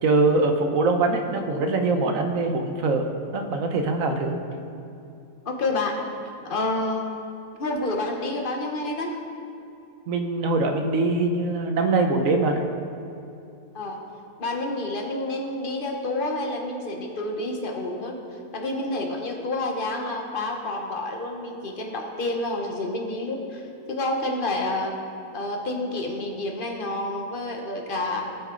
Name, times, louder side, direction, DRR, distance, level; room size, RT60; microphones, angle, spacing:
voice 1, 0.0-3.1 3.3-4.4 10.1-12.6, right 3 dB, 75° right, 5 dB, 1.3 m, -23 dB
voice 2, 5.4-6.0 6.5-7.1 7.6-9.2 13.7-14.0 14.4-18.2 18.5-23.6 23.9-25.0 25.3-28.2, left 2 dB, 40° left, 2 dB, 1.2 m, -29 dB
17.5 x 6.2 x 3.8 m, 2.7 s
omnidirectional pair, 1.4 m